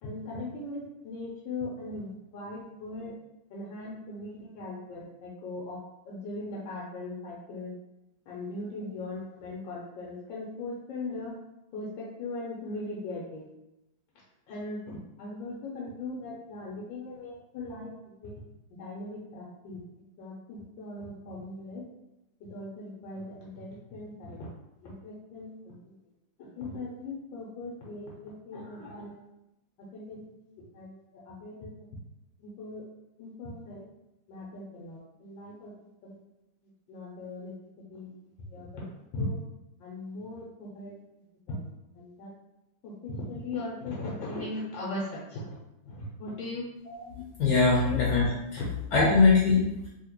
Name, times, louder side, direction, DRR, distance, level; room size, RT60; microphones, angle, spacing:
voice 1, 0.0-3.1 3.5-5.8 6.0-7.7 8.3-11.3 11.7-13.5 14.5-17.9 18.2-18.3 18.8-19.8 20.2-21.8 22.5-24.5 24.8-25.9 26.4-29.2 29.9-31.0 31.3-31.7 32.4-32.8 33.2-33.9 34.3-35.7 36.0-36.2 36.9-37.5 37.9-38.1 38.5-38.9 39.1-39.4 39.8-41.0 41.5-41.7 41.9-42.3 42.8-46.6 47.8-48.0 48.6-48.7, left 2 dB, 85° left, -5 dB, 1.4 m, -39 dB
voice 2, 47.4-48.6 48.9-49.6, left 4 dB, 70° left, -4 dB, 1.2 m, -22 dB
3.2 x 2.8 x 2.9 m, 0.91 s
omnidirectional pair, 2.0 m